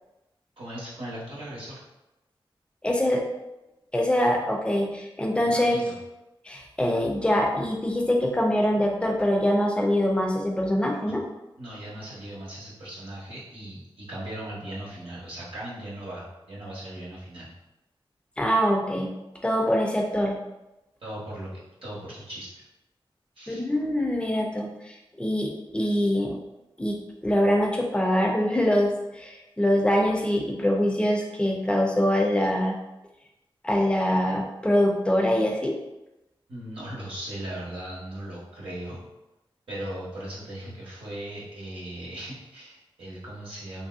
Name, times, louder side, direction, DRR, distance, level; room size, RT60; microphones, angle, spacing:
voice 1, 0.6-1.8 5.4-5.9 11.6-17.5 21.0-21.5 21.8-22.6 23.4-23.6 36.5-39.0 39.7-43.9, right 1 dB, 70° right, -7 dB, 0.8 m, -38 dB
voice 2, 2.8-3.2 3.9-5.8 6.4-11.2 18.4-19.1 19.4-20.4 23.5-26.4 26.8-32.7 33.6-35.7, equal, 10° left, 0 dB, 0.5 m, -24 dB
2.9 x 2.7 x 2.4 m, 0.97 s
wide cardioid pair, 100°, 9 cm